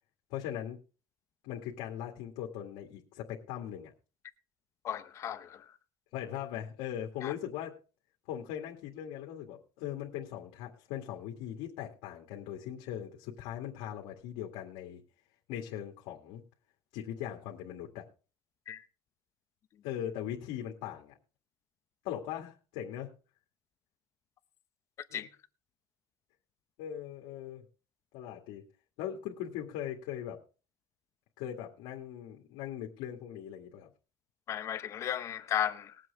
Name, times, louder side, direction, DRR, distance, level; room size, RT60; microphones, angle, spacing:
voice 1, 0.3-0.8 1.4-3.9 6.1-7.8 8.3-15.0 15.5-16.4 16.9-18.1 19.8-21.2 22.0-23.1 25.1-25.3 26.8-27.6 28.1-28.7 29.0-30.4 31.4-33.9, left 10 dB, 75° left, 2.1 m, -40 dB
voice 2, 4.8-5.6 7.2-7.3 18.7-18.8 25.1-25.3 34.5-35.9, left 10 dB, 35° left, 0.7 m, -34 dB
20.5 x 7.8 x 3.5 m
cardioid pair, 170°, 9 cm